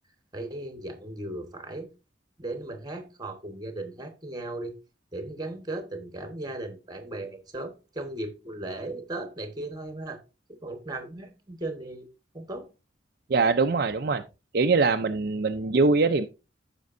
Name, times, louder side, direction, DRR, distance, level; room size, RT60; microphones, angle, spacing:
voice 1, 0.3-1.9 2.4-4.7 5.1-10.2 10.6-12.1 12.3-12.7, right 2 dB, 20° right, 1.3 m, -37 dB
voice 2, 13.3-14.2 14.5-16.3, right 4 dB, 55° right, 0.5 m, -22 dB
14.5 x 5.2 x 2.6 m
head